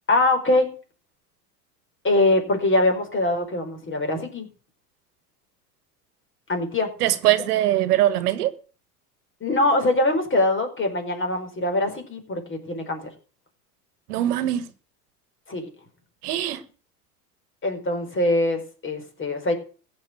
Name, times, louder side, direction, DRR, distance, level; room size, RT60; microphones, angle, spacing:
voice 1, 0.1-0.7 2.0-4.5 6.5-6.9 9.4-13.1 15.5-15.7 17.6-19.5, left 2 dB, 25° left, 4.7 m, -23 dB
voice 2, 7.0-8.5 14.1-14.6 16.2-16.6, right 13 dB, 70° right, 1.5 m, -22 dB
15.0 x 5.9 x 9.5 m
hypercardioid pair, 85°, 46 cm